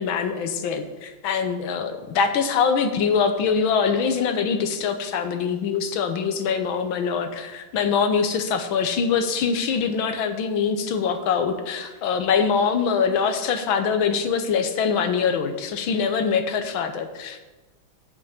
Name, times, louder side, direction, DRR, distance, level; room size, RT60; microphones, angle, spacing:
voice 1, 0.0-17.4, left 6 dB, 80° left, 8 dB, 1.6 m, -23 dB
8.1 x 5.6 x 6.4 m, 1.2 s
omnidirectional pair, 2.2 m